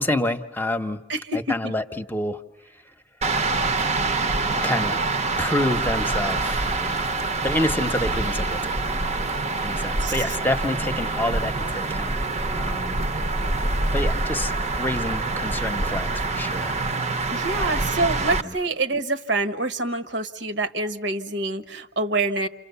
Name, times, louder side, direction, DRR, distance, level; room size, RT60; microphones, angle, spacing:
voice 1, 0.0-1.0 1.3-2.4 4.6-5.0 5.4-7.1 7.4-8.8 9.6-12.2 12.5-13.0 13.9-16.8 17.6-17.9 18.4-18.5, left 1 dB, 10° left, 8 dB, 1.0 m, -28 dB
voice 2, 1.1-1.6 9.6-10.1 17.3-22.5, right 2 dB, 70° right, 8 dB, 1.3 m, -26 dB
sound 1, 3.2-18.4, right 3 dB, 35° right, 0.9 m, -25 dB
29.5 x 28.0 x 7.0 m, 0.89 s
head